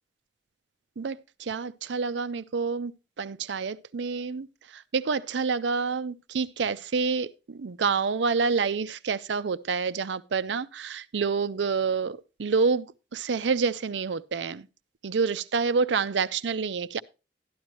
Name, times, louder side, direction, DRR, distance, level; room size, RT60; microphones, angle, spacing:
voice 1, 1.0-2.9 3.2-4.5 4.7-12.9 13.1-14.7 15.0-17.0, right 5 dB, 85° right, 0.5 m, -28 dB
12.5 x 10.5 x 3.0 m
head